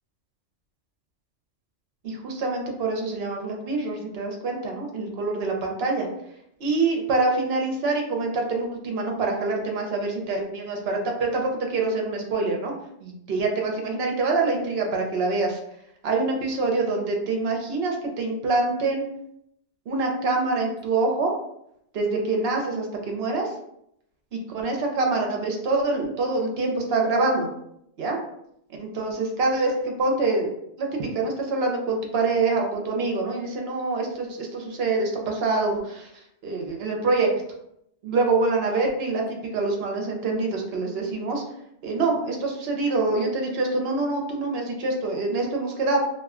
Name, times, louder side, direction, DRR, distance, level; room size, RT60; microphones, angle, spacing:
voice 1, 2.0-6.1 6.6-12.7 13.0-15.6 16.0-19.0 19.9-21.3 21.9-23.5 24.5-27.5 28.0-28.2 28.8-30.5 30.8-36.1 36.4-37.3 38.0-41.4 41.8-46.0, right 3 dB, 65° right, 1 dB, 0.9 m, -25 dB
2.3 x 2.2 x 3.5 m, 0.76 s
omnidirectional pair, 1.2 m